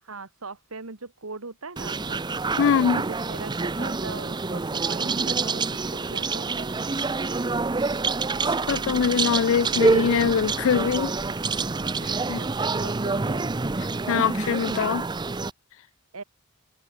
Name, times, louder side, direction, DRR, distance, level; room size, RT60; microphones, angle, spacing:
voice 1, 0.0-2.2 2.6-6.8 12.2-12.5 12.8-13.5 16.1-16.2, right 3 dB, 70° right, 2.0 m, -40 dB
sound 1, 1.8-15.5, right 3 dB, 20° right, 0.5 m, -27 dB
voice 2, 2.6-3.0 8.4-11.1 12.3-12.4 14.1-15.0, left 7 dB, 65° left, 0.4 m, -23 dB
head